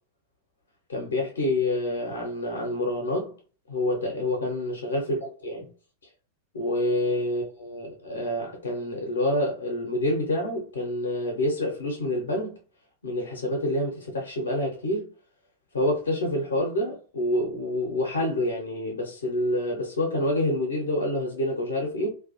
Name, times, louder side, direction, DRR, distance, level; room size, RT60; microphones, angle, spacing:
voice 1, 0.9-3.3 3.7-5.7 6.5-12.5 13.0-15.1 15.7-22.1, left 1 dB, 70° left, 0.5 m, -27 dB
2.4 x 2.1 x 2.8 m
figure-of-eight pair, 90°, 0 cm